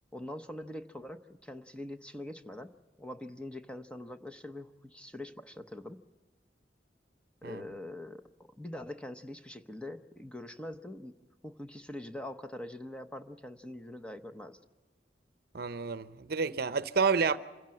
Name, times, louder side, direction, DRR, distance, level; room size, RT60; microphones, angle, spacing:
voice 1, 0.1-2.7 3.0-6.0 7.4-8.3 8.6-11.2 11.4-14.6, left 1 dB, 5° left, 0.7 m, -43 dB
voice 2, 15.5-17.4, right 5 dB, 60° right, 0.7 m, -29 dB
26.0 x 16.5 x 7.6 m
head